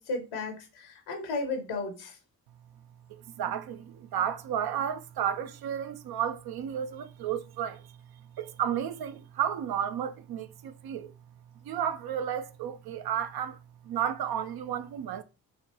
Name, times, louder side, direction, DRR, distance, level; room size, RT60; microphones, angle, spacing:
voice 1, 0.0-2.2, left 3 dB, 80° left, 1.4 m, -34 dB
voice 2, 3.1-11.1 11.6-13.6 13.8-15.2, right 9 dB, 50° right, 0.6 m, -32 dB
5.0 x 2.9 x 3.0 m
hypercardioid pair, 40°, 47 cm